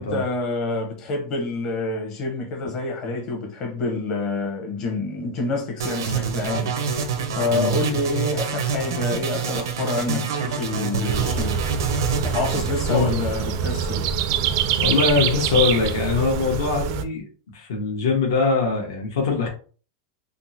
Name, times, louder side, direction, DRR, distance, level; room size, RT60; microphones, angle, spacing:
voice 1, 0.0-7.0 7.3-11.6 12.2-14.1, left 3 dB, 35° left, 0.8 m, -27 dB
sound 1, 5.8-13.9, right 6 dB, 85° right, 0.6 m, -27 dB
sound 2, 11.1-17.0, right 8 dB, 50° right, 0.4 m, -25 dB
voice 2, 14.8-17.2 17.5-19.5, left 4 dB, 75° left, 1.0 m, -22 dB
3.5 x 2.0 x 2.7 m
supercardioid pair, 160°, 2 cm